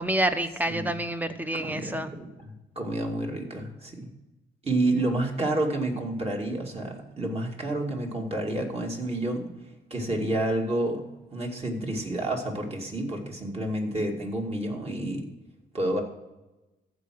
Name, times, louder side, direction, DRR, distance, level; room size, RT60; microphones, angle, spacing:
voice 1, 0.0-2.2, right 1 dB, 10° right, 9 dB, 0.9 m, -28 dB
voice 2, 1.5-4.1 4.6-9.5 9.9-11.0 11.3-15.2 15.7-16.0, right 1 dB, 30° right, 0 dB, 2.4 m, -29 dB
14.5 x 4.9 x 6.2 m, 1.0 s
cardioid pair, 90°, 20 cm